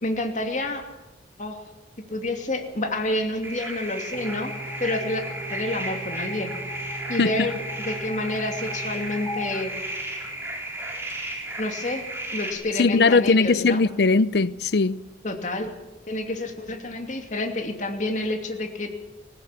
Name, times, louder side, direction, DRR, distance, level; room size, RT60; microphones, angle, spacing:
voice 1, 0.0-0.8 1.4-1.6 2.1-4.5 4.8-6.5 7.1-9.7 11.6-12.0 12.3-13.8 15.2-15.7 16.1-18.9, left 2 dB, 45° left, 2.8 m, -29 dB
sound 1, 3.4-12.5, right 1 dB, 15° right, 4.3 m, -34 dB
sound 2, 4.1-10.6, equal, 15° left, 4.9 m, -38 dB
voice 2, 12.8-15.0, left 4 dB, 65° left, 0.6 m, -19 dB
20.5 x 16.0 x 8.6 m
head